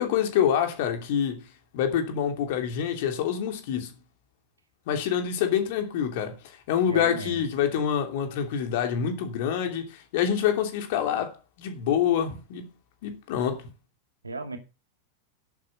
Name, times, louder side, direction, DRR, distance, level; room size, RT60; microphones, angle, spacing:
voice 1, 0.0-1.4 1.7-3.9 4.9-12.7 13.0-13.6, left 8 dB, 50° left, 2.9 m, -26 dB
voice 2, 6.9-7.4 14.2-14.6, right 3 dB, 80° right, 2.4 m, -34 dB
11.0 x 8.7 x 5.6 m
figure-of-eight pair, 90°, 0 cm